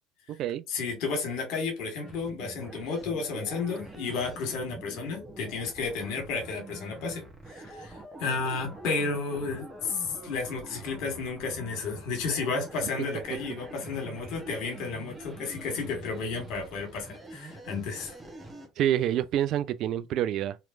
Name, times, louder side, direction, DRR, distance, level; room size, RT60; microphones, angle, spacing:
voice 1, 0.7-7.2 7.5-18.2, left 4 dB, 65° left, 1.5 m, -32 dB
sound 1, 2.0-18.7, right 2 dB, 20° right, 1.1 m, -45 dB
voice 2, 18.8-20.6, right 11 dB, 60° right, 0.3 m, -27 dB
3.1 x 3.0 x 2.5 m
hypercardioid pair, 70°, 0 cm